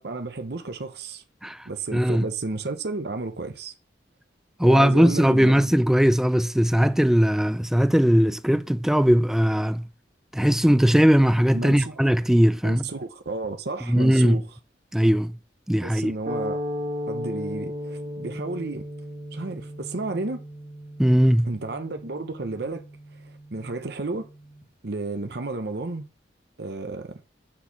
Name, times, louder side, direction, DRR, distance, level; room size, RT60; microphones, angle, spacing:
voice 1, 0.0-1.2 1.6-3.7 4.6-5.7 11.5-12.0 12.6-14.4 15.8-16.6 17.1-18.9 19.3-20.4 21.4-22.8 23.1-24.3 24.8-26.1 26.6-27.2, right 3 dB, 65° right, 0.9 m, -32 dB
voice 2, 1.4-2.2 4.6-9.8 10.3-12.8 13.9-14.4 14.9-15.3 15.7-16.1 21.0-21.5, equal, 5° right, 0.4 m, -19 dB
sound 1, 16.3-24.6, left 1 dB, 40° right, 1.6 m, -36 dB
7.2 x 4.6 x 7.0 m
head